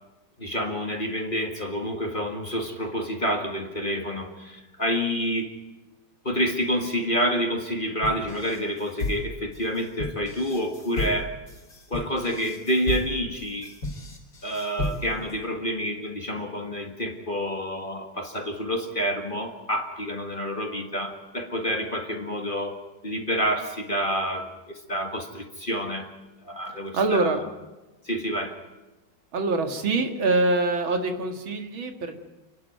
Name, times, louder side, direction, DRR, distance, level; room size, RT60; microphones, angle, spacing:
voice 1, 0.4-5.5 6.2-11.3 11.9-13.7 14.4-22.8 23.0-26.1 26.4-27.3 28.0-28.6, equal, 25° left, 5 dB, 1.8 m, -28 dB
sound 1, 8.0-15.3, left 2 dB, 55° left, 3.9 m, -34 dB
voice 2, 26.9-27.4 29.3-32.2, right 3 dB, 75° right, 5 dB, 2.7 m, -24 dB
29.0 x 11.5 x 9.3 m, 1.1 s
omnidirectional pair, 2.2 m